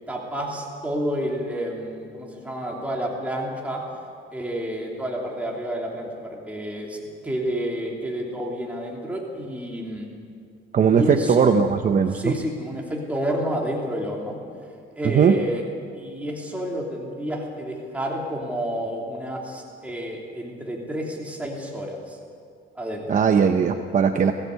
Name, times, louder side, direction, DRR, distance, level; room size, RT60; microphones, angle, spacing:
voice 1, 0.1-3.8 4.3-10.1 10.9-11.5 12.1-14.4 14.9-15.6 15.9-22.2 22.7-23.1, equal, 5° right, -2 dB, 3.1 m, -30 dB
voice 2, 10.7-12.4 15.0-15.5 23.1-24.3, right 6 dB, 40° right, 6 dB, 0.8 m, -19 dB
21.5 x 15.5 x 8.2 m, 2.3 s
cardioid pair, 130°, 20 cm